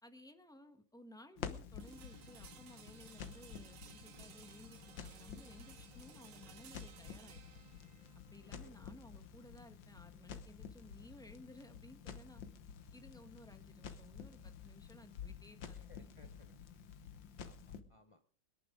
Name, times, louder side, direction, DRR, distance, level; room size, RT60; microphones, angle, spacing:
voice 1, 0.0-7.4 8.3-12.4 12.9-15.8, left 1 dB, 5° left, 7 dB, 1.0 m, -58 dB
Crackle, 1.4-17.8, left 7 dB, 85° left, 1.8 m, -51 dB
sound 1, 1.8-11.7, right 8 dB, 90° right, 1.9 m, -60 dB
voice 2, 8.4-8.7 15.7-16.6 17.4-18.2, left 3 dB, 40° left, 7 dB, 0.4 m, -64 dB
25.0 x 10.5 x 3.7 m, 0.44 s
omnidirectional pair, 2.0 m